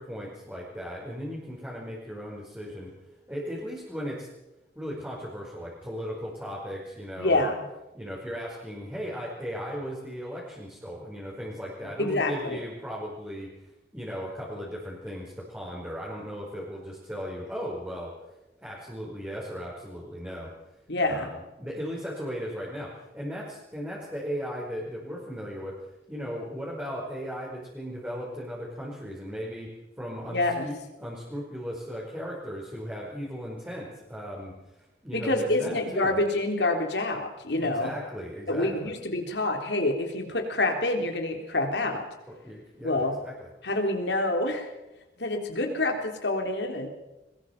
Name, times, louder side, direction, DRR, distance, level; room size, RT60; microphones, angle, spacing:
voice 1, 0.0-2.9 3.3-4.3 4.7-7.4 7.9-13.5 13.9-18.1 18.6-20.5 21.1-25.7 26.1-34.5 35.0-36.2 37.6-38.9 42.3-43.5, equal, 10° right, -5 dB, 5.0 m, -37 dB
voice 2, 7.2-7.6 12.0-12.6 20.9-21.3 30.3-30.7 35.1-37.9 38.5-42.0 42.8-43.2 43.6-44.7 45.2-46.9, left 2 dB, 70° left, 4 dB, 3.6 m, -27 dB
22.5 x 21.0 x 5.9 m, 0.99 s
head